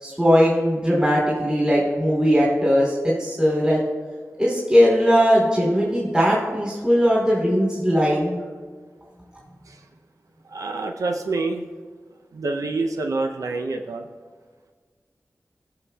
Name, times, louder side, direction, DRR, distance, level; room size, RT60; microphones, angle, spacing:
voice 1, 0.0-3.8 4.4-8.3, equal, 15° right, -5 dB, 2.8 m, -19 dB
voice 2, 10.5-11.6 12.3-14.1, right 3 dB, 85° right, 3 dB, 0.5 m, -27 dB
16.5 x 6.4 x 2.3 m, 1.5 s
wide cardioid pair, 70°, 6 cm